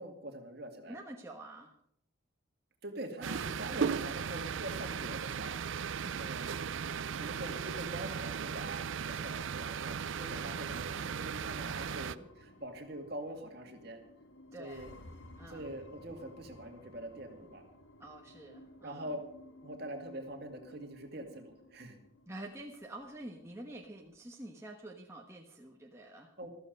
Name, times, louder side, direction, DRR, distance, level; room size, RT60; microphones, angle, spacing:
voice 1, 0.0-1.0 2.8-6.5 7.1-14.0 14.6-14.9 15.5-17.6 18.8-19.2 19.6-22.0 26.4-26.5, right 1 dB, 50° right, 4 dB, 2.3 m, -44 dB
voice 2, 0.9-1.8 3.2-3.5 6.0-6.4 11.6-12.3 14.5-14.9 15.4-15.7 18.0-19.2 22.3-26.3, right 1 dB, 15° right, 1 dB, 1.1 m, -48 dB
sound 1, 3.2-12.2, right 6 dB, 70° right, 0.5 m, -37 dB
sound 2, 10.2-24.2, left 1 dB, 75° left, 1.6 m, -56 dB
14.0 x 13.5 x 5.3 m, 0.69 s
head